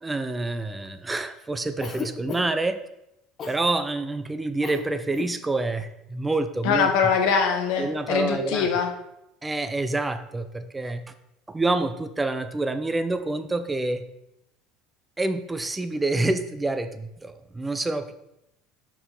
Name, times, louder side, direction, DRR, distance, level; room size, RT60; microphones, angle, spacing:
voice 1, 0.0-2.8 3.5-6.9 7.8-8.7 9.4-11.0 11.5-14.0 15.2-18.1, right 2 dB, 15° right, 10 dB, 0.5 m, -27 dB
Cough, 1.8-2.7 3.4-3.6 4.6-4.9 5.1-5.4, left 5 dB, 40° left, 1.0 m, -34 dB
voice 2, 6.6-8.9, left 6 dB, 70° left, 5 dB, 1.0 m, -23 dB
5.6 x 4.7 x 4.2 m, 0.85 s
supercardioid pair, 90°, 0 cm